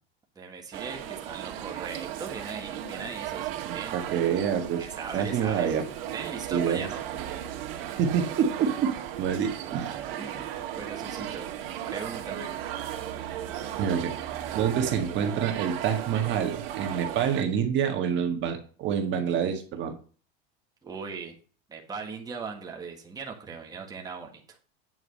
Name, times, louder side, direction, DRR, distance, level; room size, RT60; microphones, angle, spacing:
voice 1, 0.3-4.0 4.8-5.7 6.1-7.0 10.2-12.5 20.8-21.4 21.7-24.6, right 5 dB, 10° right, 0 dB, 1.6 m, -39 dB
sound 1, 0.7-17.4, right 11 dB, 65° right, 2.0 m, -36 dB
voice 2, 3.6-4.8 5.1-5.8 6.5-6.9 8.0-8.9 9.2-10.0 13.8-14.1 14.6-19.9, right 8 dB, 35° right, 4 dB, 1.7 m, -27 dB
9.5 x 5.0 x 6.4 m, 0.39 s
supercardioid pair, 145°, 31 cm